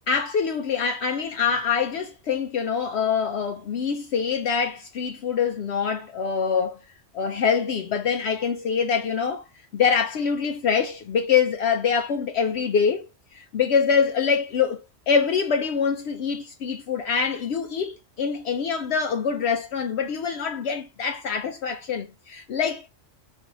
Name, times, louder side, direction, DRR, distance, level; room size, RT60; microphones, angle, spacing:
voice 1, 0.1-6.8 7.1-9.4 9.7-13.1 13.3-14.8 15.1-22.9, left 6 dB, 65° left, 0.8 m, -24 dB
6.1 x 2.6 x 2.9 m
omnidirectional pair, 1.3 m